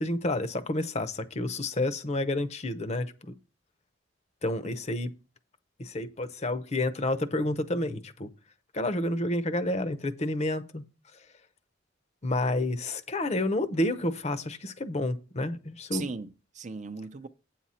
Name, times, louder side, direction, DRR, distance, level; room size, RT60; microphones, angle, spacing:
voice 1, 0.0-3.3 4.4-5.1 5.8-8.3 8.7-10.8 12.2-16.1, left 1 dB, 35° left, 0.7 m, -29 dB
voice 2, 15.9-17.3, right 4 dB, 40° right, 0.6 m, -37 dB
9.0 x 7.6 x 4.2 m
head